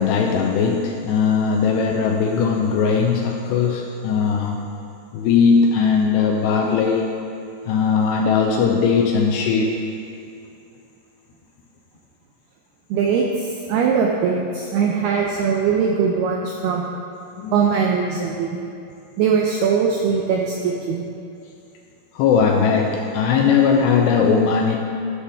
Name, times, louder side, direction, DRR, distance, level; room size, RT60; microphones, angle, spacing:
voice 1, 0.0-4.6 5.1-7.1 7.7-9.7 17.4-17.5 22.2-24.8, left 6 dB, 80° left, 1 dB, 2.5 m, -19 dB
voice 2, 12.9-16.9 17.5-18.6 19.2-21.0, right 6 dB, 85° right, 0 dB, 2.3 m, -21 dB
12.5 x 11.5 x 3.6 m, 2.6 s
omnidirectional pair, 5.4 m